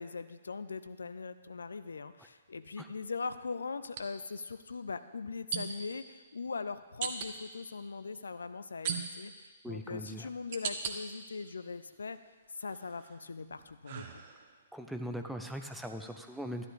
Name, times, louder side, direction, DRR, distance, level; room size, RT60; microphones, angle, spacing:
voice 1, 0.0-12.2 12.6-14.2, left 4 dB, 65° left, 12 dB, 0.5 m, -41 dB
sound 1, 1.0-1.2 3.9-4.0 5.5-5.9 7.0-7.3 8.8-9.4 10.0-11.0 11.5-12.2 12.6-14.6, right 7 dB, 40° right, 0.9 m, -39 dB
voice 2, 9.6-10.3 14.7-16.7, equal, ahead, 5 dB, 0.7 m, -40 dB
12.5 x 11.0 x 3.5 m, 1.4 s
figure-of-eight pair, 120°, 0 cm